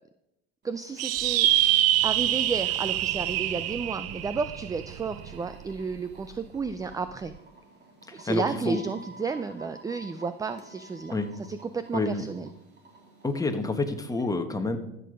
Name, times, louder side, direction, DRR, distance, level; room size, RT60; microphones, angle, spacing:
voice 1, 0.6-1.5 2.0-7.3 8.1-12.5, right 4 dB, 10° right, 12 dB, 0.4 m, -32 dB
sound 1, 0.6-14.2, right 3 dB, 35° right, 3.0 m, -53 dB
sound 2, 1.0-5.7, right 13 dB, 50° right, 0.7 m, -25 dB
voice 2, 8.1-8.8 11.1-11.3 11.9-12.2 13.2-14.8, left 3 dB, 10° left, 6 dB, 1.3 m, -28 dB
14.0 x 6.8 x 5.2 m, 0.87 s
supercardioid pair, 110°, 31 cm